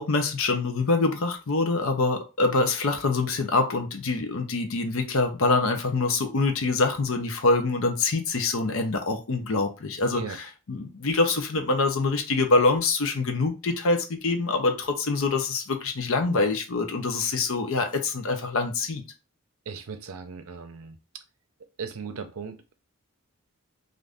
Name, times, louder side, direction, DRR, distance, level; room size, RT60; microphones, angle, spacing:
voice 1, 0.0-10.2 10.7-19.0, left 3 dB, 65° left, 0.6 m, -25 dB
voice 2, 19.7-21.2 21.8-22.7, right 5 dB, 75° right, 0.5 m, -38 dB
2.5 x 2.5 x 3.4 m
head